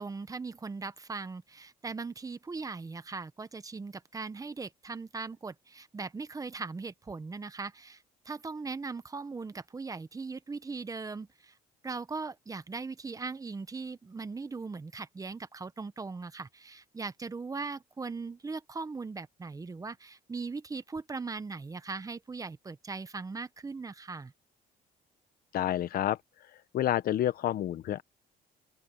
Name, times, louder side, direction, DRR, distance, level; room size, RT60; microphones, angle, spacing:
voice 1, 0.0-11.5 11.8-24.3, right 4 dB, 20° right, 1.1 m, -39 dB
voice 2, 25.5-26.2 26.7-28.0, left 12 dB, 60° left, 1.2 m, -29 dB
open air
cardioid pair, 110°, 17 cm